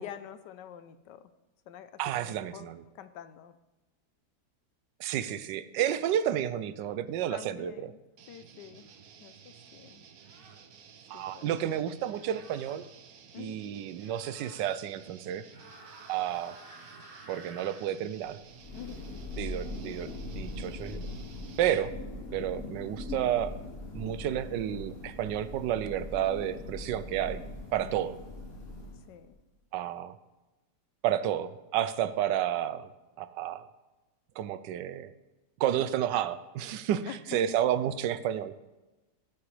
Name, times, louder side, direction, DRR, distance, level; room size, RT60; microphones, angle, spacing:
voice 1, 0.0-1.3 1.7-3.5 7.3-8.0 8.3-8.9 9.2-10.0 11.1-11.5 13.3-13.6 18.7-19.1 27.8-28.3 28.9-29.4 37.1-37.2 37.5-37.6, left 10 dB, 80° left, 12 dB, 1.3 m, -47 dB
voice 2, 2.0-2.8 5.0-7.9 11.1-12.9 13.4-15.4 16.1-16.6 17.3-18.4 19.4-20.1 20.4-21.0 21.6-21.9 22.3-23.6 23.9-27.4 27.7-28.2 29.7-30.1 31.0-32.9 33.2-33.7 34.4-35.1 35.6-38.6, right 11 dB, 85° right, 14 dB, 1.2 m, -31 dB
sound 1, 8.2-21.9, right 7 dB, 60° right, 1.2 m, -54 dB
sound 2, 8.8-9.0 10.2-10.6 12.1-12.8 13.9-14.7 15.4-17.9, right 2 dB, 30° right, 2.5 m, -52 dB
Thunder, 18.3-29.3, left 2 dB, 35° left, 1.7 m, -41 dB
16.5 x 6.8 x 3.2 m, 1.1 s
omnidirectional pair, 1.9 m